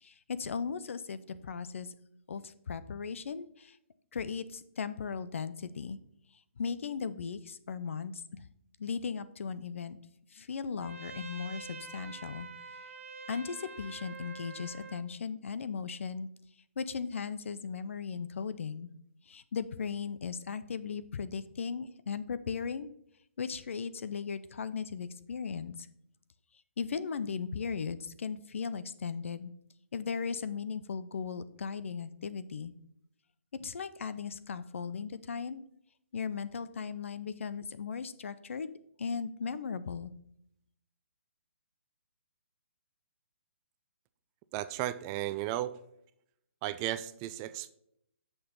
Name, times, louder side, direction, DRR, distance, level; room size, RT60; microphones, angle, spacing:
voice 1, 0.0-1.9 2.3-3.8 4.1-6.0 6.6-8.2 8.8-10.0 10.3-12.5 13.3-16.3 16.8-18.9 19.3-22.9 23.4-25.9 26.8-29.5 29.9-32.7 33.6-35.6 36.1-40.1, left 6 dB, 65° left, 14 dB, 0.7 m, -37 dB
Trumpet, 10.8-15.1, right 4 dB, 70° right, 1.0 m, -46 dB
voice 2, 44.5-45.7 46.6-47.7, right 13 dB, 20° right, 13 dB, 0.3 m, -34 dB
7.7 x 6.4 x 3.8 m, 0.73 s
hypercardioid pair, 150°, 7 cm